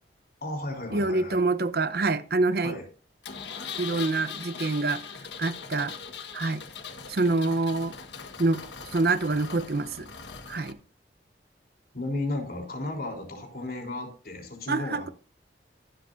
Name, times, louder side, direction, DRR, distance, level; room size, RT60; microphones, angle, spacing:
voice 1, 0.4-1.4 2.6-2.8 11.9-15.1, left 2 dB, 55° left, 3.7 m, -34 dB
voice 2, 0.9-2.7 3.8-5.0 5.4-6.0 6.3-6.6 7.1-8.0 8.4-8.6 8.9-10.1 10.5-10.8 14.7-15.1, right 3 dB, 60° right, 0.8 m, -26 dB
Engine, 3.2-10.7, left 6 dB, 80° left, 1.5 m, -40 dB
22.5 x 7.8 x 2.6 m
head